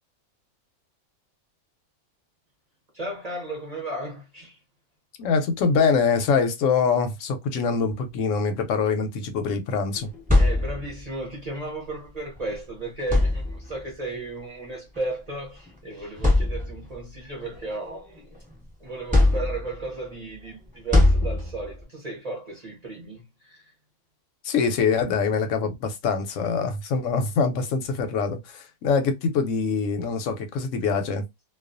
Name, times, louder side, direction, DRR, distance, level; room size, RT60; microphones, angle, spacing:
voice 1, 2.9-4.6 10.3-18.3 18.8-23.7, right 2 dB, 40° right, 0.6 m, -35 dB
voice 2, 5.2-10.1 24.4-31.2, left 5 dB, 65° left, 0.8 m, -24 dB
sound 1, 10.0-11.1 12.4-12.5 13.0-13.9 15.0-15.1 15.7-15.8 16.2-17.0 17.5-18.5 19.1-19.9 20.9-21.8, left 2 dB, 5° right, 0.8 m, -22 dB
2.3 x 2.2 x 2.4 m
omnidirectional pair, 1.6 m